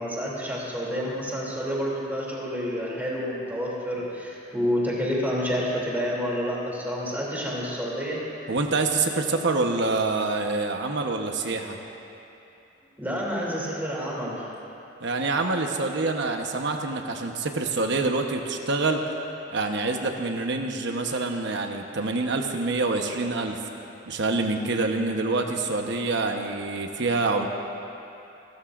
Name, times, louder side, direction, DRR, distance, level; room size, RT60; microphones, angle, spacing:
voice 1, 0.0-8.2 13.0-14.4, equal, 10° right, -5 dB, 2.8 m, -29 dB
voice 2, 8.5-11.8 15.0-19.0 19.5-23.6 24.1-27.5, right 3 dB, 65° right, 3 dB, 1.1 m, -26 dB
28.0 x 13.0 x 2.6 m, 2.9 s
head